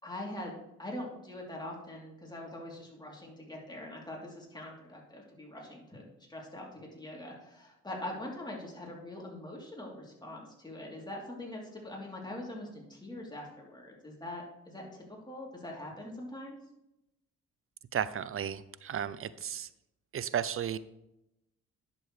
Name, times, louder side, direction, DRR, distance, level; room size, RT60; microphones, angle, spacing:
voice 1, 0.0-6.0 6.3-16.6, left 1 dB, 15° left, -2 dB, 3.3 m, -43 dB
voice 2, 17.9-19.7 20.1-20.8, right 9 dB, 45° right, 15 dB, 0.6 m, -34 dB
11.0 x 6.9 x 3.3 m, 0.86 s
supercardioid pair, 65°, 31 cm